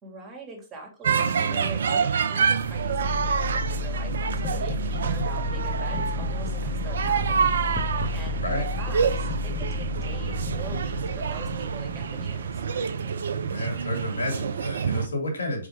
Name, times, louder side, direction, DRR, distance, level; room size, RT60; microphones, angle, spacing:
voice 1, 0.0-7.7 8.1-12.6, right 3 dB, 25° right, 1 dB, 2.7 m, -42 dB
sound 1, 1.0-15.1, right 6 dB, 75° right, 0.7 m, -27 dB
sound 2, 2.5-14.5, left 5 dB, 30° left, 1.4 m, -33 dB
voice 2, 13.4-15.7, left 1 dB, 85° left, 1 dB, 2.6 m, -31 dB
6.1 x 4.7 x 3.6 m, 0.35 s
hypercardioid pair, 125°, 0 cm